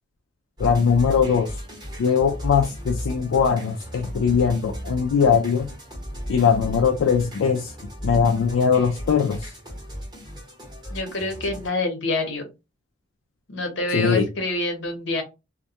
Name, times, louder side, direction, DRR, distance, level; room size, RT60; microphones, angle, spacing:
voice 1, 0.6-1.6 2.0-5.7 6.3-7.7 8.0-9.5 13.9-14.3, left 6 dB, 85° left, 0.3 m, -20 dB
sound 1, 0.6-11.7, equal, 20° right, 0.9 m, -35 dB
voice 2, 10.9-12.5 13.5-15.2, left 2 dB, 65° left, 0.8 m, -26 dB
2.2 x 2.1 x 2.7 m
head